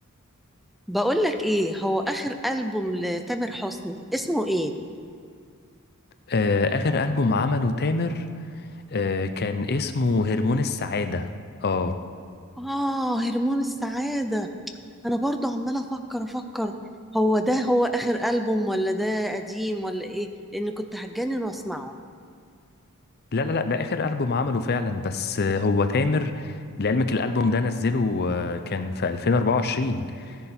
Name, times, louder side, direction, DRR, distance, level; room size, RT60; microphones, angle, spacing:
voice 1, 0.9-4.7 12.6-14.5 15.0-16.8 17.1-21.9, equal, ahead, 6 dB, 0.5 m, -26 dB
voice 2, 6.3-8.2 8.9-11.3 11.6-12.0 23.3-30.4, left 3 dB, 45° left, 9 dB, 0.6 m, -24 dB
15.0 x 10.5 x 4.4 m, 2.3 s
head